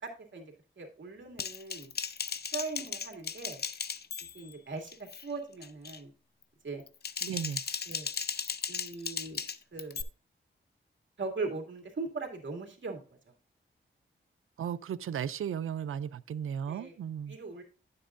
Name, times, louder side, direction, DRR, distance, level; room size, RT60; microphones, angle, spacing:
voice 1, 0.0-1.9 2.5-3.6 4.3-6.1 6.6-6.8 7.9-8.1 8.7-9.4 9.7-10.0 11.2-13.0 16.7-17.0 17.3-17.6, right 3 dB, 65° right, 2.3 m, -39 dB
Typing, 1.4-4.5 4.9-5.2 5.6-6.0 6.8-10.0, left 6 dB, 50° left, 0.6 m, -36 dB
voice 2, 7.2-7.6 14.6-17.4, right 8 dB, 90° right, 0.4 m, -35 dB
10.5 x 7.6 x 2.5 m
wide cardioid pair, 80°, 21 cm